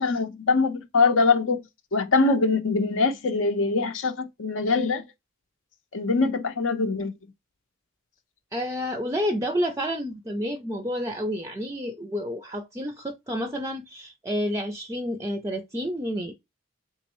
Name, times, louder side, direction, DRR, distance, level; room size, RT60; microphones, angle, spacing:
voice 1, 0.0-1.6 1.9-5.0 5.9-7.1, left 4 dB, 80° left, 0.7 m, -23 dB
voice 2, 8.5-16.4, equal, 15° right, 0.4 m, -29 dB
3.7 x 3.1 x 2.9 m
head